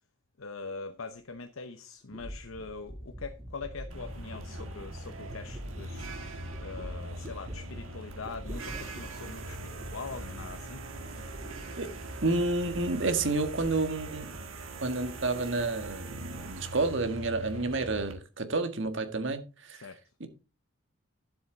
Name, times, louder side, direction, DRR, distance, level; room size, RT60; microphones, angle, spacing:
voice 1, 0.4-6.3 6.6-11.2 17.4-17.7 19.7-20.0, left 4 dB, 80° left, 0.9 m, -43 dB
sound 1, 1.4-1.5 2.1-11.8 12.1-12.9 13.2-14.1 14.3-14.9, equal, 30° right, 2.1 m, -45 dB
sound 2, 3.9-18.1, right 2 dB, 75° right, 2.0 m, -42 dB
voice 2, 12.2-14.3 14.8-19.9 20.2-20.3, right 3 dB, 60° right, 1.7 m, -30 dB
11.5 x 7.9 x 3.9 m
head